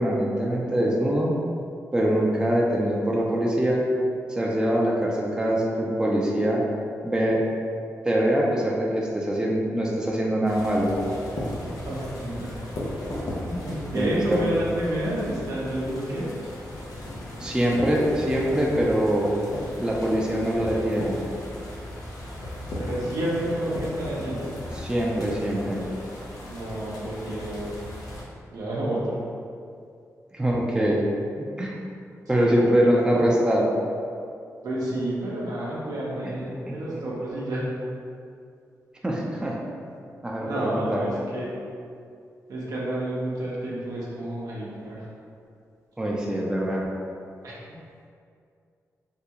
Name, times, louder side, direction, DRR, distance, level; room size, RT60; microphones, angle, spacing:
voice 1, 0.0-1.4 1.9-3.8 4.3-6.6 7.0-7.4 8.0-10.9 13.9-14.5 17.4-19.3 19.8-21.2 24.7-25.8 30.3-31.0 31.4-31.8 32.3-33.7 36.2-36.3 36.7-37.0 39.0-39.6 40.2-41.1 46.0-46.9, right 1 dB, 15° right, -3 dB, 0.5 m, -23 dB
sound 1, 10.4-28.2, left 1 dB, 80° left, 0.6 m, -36 dB
voice 2, 11.8-12.5 13.4-16.3 22.8-24.4 26.5-27.8 28.5-29.2 32.3-32.7 34.6-37.6 40.4-41.5 42.5-45.1 47.4-47.5, right 1 dB, 75° right, -6 dB, 0.9 m, -30 dB
3.6 x 2.3 x 2.9 m, 2.4 s
cardioid pair, 65°, 6 cm